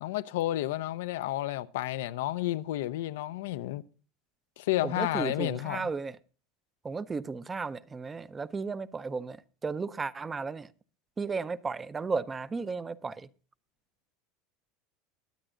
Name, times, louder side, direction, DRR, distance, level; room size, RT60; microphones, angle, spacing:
voice 1, 0.0-3.8 4.6-5.8, left 15 dB, 85° left, 0.5 m, -31 dB
voice 2, 4.8-6.2 6.8-10.7 11.2-13.3, right 4 dB, 20° right, 0.5 m, -34 dB
21.0 x 8.9 x 2.5 m
supercardioid pair, 125°, 0 cm